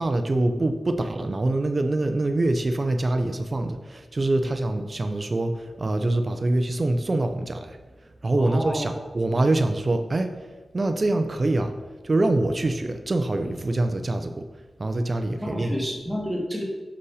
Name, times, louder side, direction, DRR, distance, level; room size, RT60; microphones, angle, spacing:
voice 1, 0.0-7.8 8.2-10.3 10.7-11.7 12.0-14.5 14.8-15.9, right 2 dB, 40° right, 7 dB, 0.8 m, -24 dB
voice 2, 8.4-9.0 15.4-16.7, equal, ahead, -2 dB, 2.0 m, -30 dB
6.4 x 5.8 x 4.9 m, 1.2 s
wide cardioid pair, 90°, 0 cm